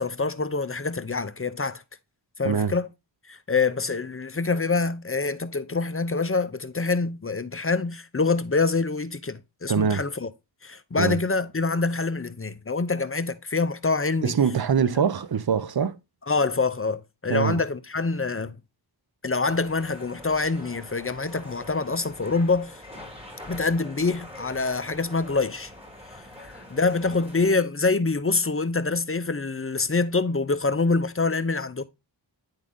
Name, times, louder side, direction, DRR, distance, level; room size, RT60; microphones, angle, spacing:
voice 1, 0.0-1.8 2.4-2.9 3.3-10.3 10.6-14.3 16.3-18.6 19.2-22.8 23.5-25.7 26.4-31.8, left 3 dB, 30° left, 0.6 m, -25 dB
voice 2, 9.7-10.0 11.0-11.2 14.2-16.0 17.3-17.6, right 6 dB, 55° right, 0.7 m, -23 dB
sound 1, 19.4-27.5, left 1 dB, 10° right, 2.7 m, -44 dB
9.6 x 3.8 x 3.5 m
wide cardioid pair, 40°, 46 cm